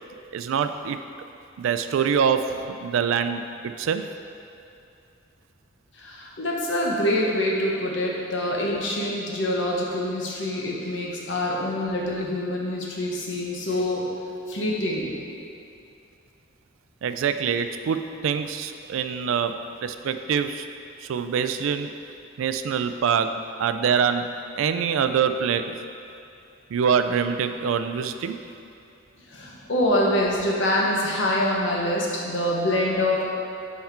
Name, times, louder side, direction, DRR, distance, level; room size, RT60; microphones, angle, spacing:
voice 1, 0.3-1.0 1.6-4.1 17.0-20.7 21.0-21.9 22.4-24.3 24.6-25.8 26.7-28.4, right 7 dB, 85° right, 9 dB, 0.3 m, -25 dB
voice 2, 5.9-14.1 14.5-15.1 29.3-33.3, left 1 dB, 65° left, -3 dB, 1.0 m, -25 dB
5.7 x 4.3 x 4.4 m, 2.6 s
head